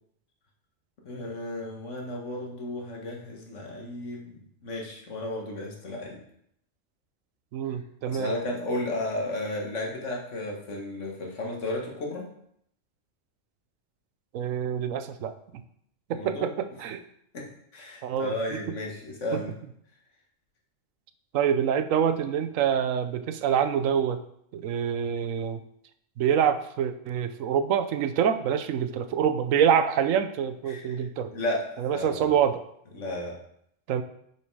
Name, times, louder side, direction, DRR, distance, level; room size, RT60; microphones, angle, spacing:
voice 1, 1.1-6.2 8.1-12.2 16.1-16.5 17.3-17.5 17.7-19.5 30.7-31.0 31.3-32.3 32.9-33.4, left 1 dB, 65° left, -1 dB, 1.9 m, -33 dB
voice 2, 7.5-8.3 14.3-15.4 16.1-17.0 18.0-18.6 19.3-19.4 21.3-24.2 24.5-25.6 26.2-31.3 31.8-32.6 33.9-34.0, right 8 dB, 85° right, 10 dB, 1.0 m, -26 dB
6.8 x 5.9 x 4.6 m, 0.71 s
omnidirectional pair, 1.3 m